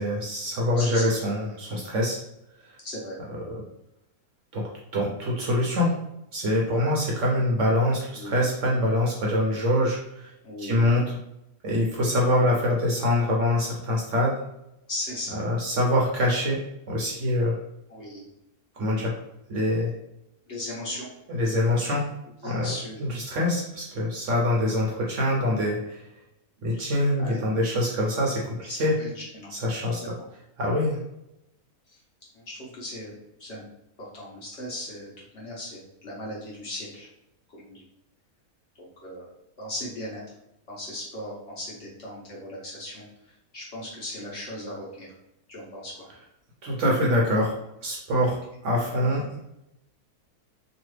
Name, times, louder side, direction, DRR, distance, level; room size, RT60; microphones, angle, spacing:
voice 1, 0.0-2.2 2.6-2.8 3.5-3.6 4.5-4.7 4.9-5.9 6.3-10.3 10.6-11.1 11.6-14.3 15.4-17.6 18.7-19.2 19.5-19.9 21.3-22.1 22.4-22.7 23.0-26.1 26.6-28.9 29.5-30.0 30.6-31.0 46.6-47.5 47.8-49.5, left 1 dB, 60° right, -3 dB, 0.9 m, -24 dB
voice 2, 0.8-1.1 2.8-3.2 8.1-8.3 10.4-10.9 14.9-15.4 17.9-18.3 20.5-21.1 22.4-23.0 26.7-26.9 27.2-27.4 28.6-29.5 30.0-30.1 31.9-32.0 32.3-33.6 34.0-37.1 37.5-37.8 38.8-39.3 39.6-40.2 40.7-45.1 45.5-46.1, left 1 dB, 50° left, -5 dB, 1.0 m, -37 dB
3.1 x 2.4 x 3.1 m, 0.85 s
omnidirectional pair, 1.6 m